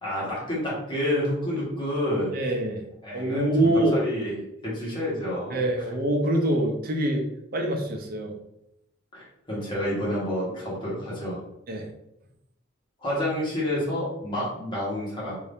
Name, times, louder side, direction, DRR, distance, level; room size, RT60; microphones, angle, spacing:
voice 1, 0.0-2.4 3.0-5.6 9.1-11.4 13.0-15.4, left 1 dB, 20° left, -7 dB, 1.2 m, -29 dB
voice 2, 2.3-2.8 3.1-4.0 5.5-7.2 7.5-8.4 11.7-11.9, right 1 dB, 45° right, 2 dB, 0.5 m, -25 dB
2.6 x 2.6 x 3.4 m, 0.83 s
head